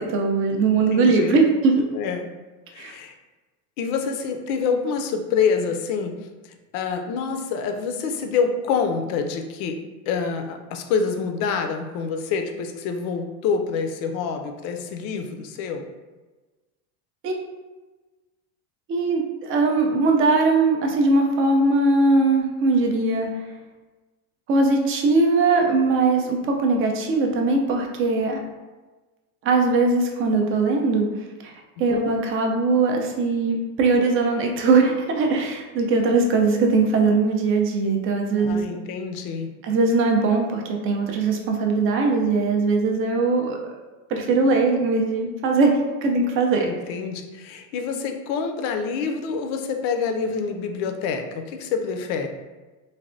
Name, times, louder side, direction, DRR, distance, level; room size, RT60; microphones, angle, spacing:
voice 1, 0.0-1.7 2.8-2.9 17.2-17.4 18.9-23.3 24.5-28.4 29.4-31.1 31.4-31.5 31.8-38.6 39.6-43.6 44.1-46.7, right 3 dB, 30° right, 2 dB, 0.4 m, -20 dB
voice 2, 0.7-1.4 1.9-2.3 2.7-3.1 3.8-6.2 6.4-9.8 10.1-15.9 31.9-32.1 38.4-39.5 46.6-52.3, left 5 dB, 60° left, 5 dB, 0.5 m, -27 dB
3.2 x 2.2 x 2.5 m, 1.2 s
supercardioid pair, 120°, 44 cm